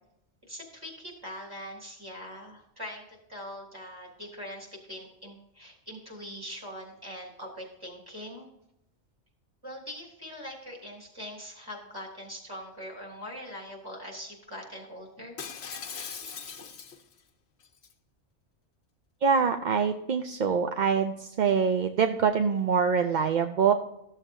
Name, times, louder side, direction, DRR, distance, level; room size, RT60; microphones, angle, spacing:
voice 1, 0.5-8.5 9.6-15.4, equal, 20° right, -1 dB, 3.0 m, -42 dB
Shatter, 15.4-17.2 17.6-17.9, left 6 dB, 70° left, 1.2 m, -40 dB
voice 2, 19.2-23.7, right 6 dB, 55° right, 7 dB, 0.6 m, -25 dB
14.0 x 7.3 x 2.7 m, 0.82 s
omnidirectional pair, 1.2 m